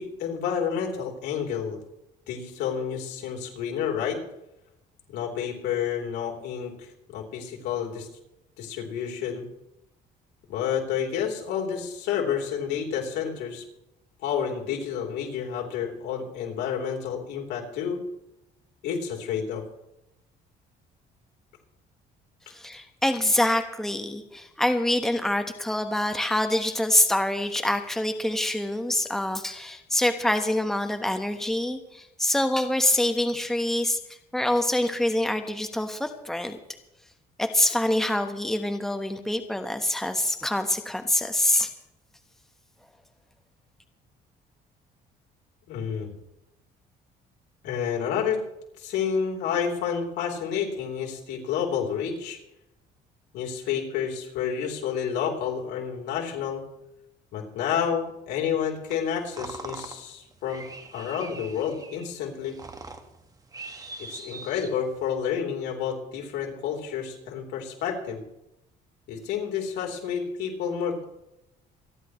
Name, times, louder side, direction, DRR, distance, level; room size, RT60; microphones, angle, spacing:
voice 1, 0.0-1.8 2.3-4.2 5.1-8.1 8.6-9.4 10.5-13.6 14.2-18.0 18.8-19.6 45.7-46.1 47.6-48.4 48.8-52.4 53.3-56.6 57.3-60.7 60.9-62.6 64.0-68.2 69.1-71.0, left 7 dB, 85° left, 0 dB, 3.5 m, -30 dB
voice 2, 22.5-34.0 34.3-36.6 37.4-41.7, left 1 dB, ahead, 6 dB, 1.3 m, -25 dB
sound 1, 58.9-65.1, right 3 dB, 20° right, 1.5 m, -43 dB
28.0 x 11.0 x 3.2 m, 0.88 s
cardioid pair, 110°, 17 cm